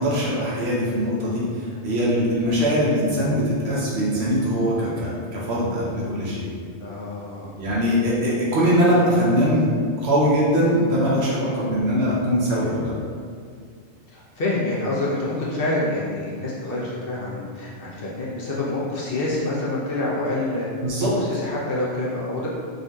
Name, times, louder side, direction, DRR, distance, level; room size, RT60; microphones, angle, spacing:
voice 1, 0.0-6.5 7.6-9.7 10.0-12.9 20.8-21.1, equal, 65° right, -6 dB, 1.0 m, -21 dB
voice 2, 6.8-7.5 11.6-11.7 14.1-20.7 21.0-22.5, left 2 dB, 60° left, -6 dB, 0.7 m, -27 dB
3.7 x 2.6 x 2.2 m, 2.1 s
omnidirectional pair, 1.2 m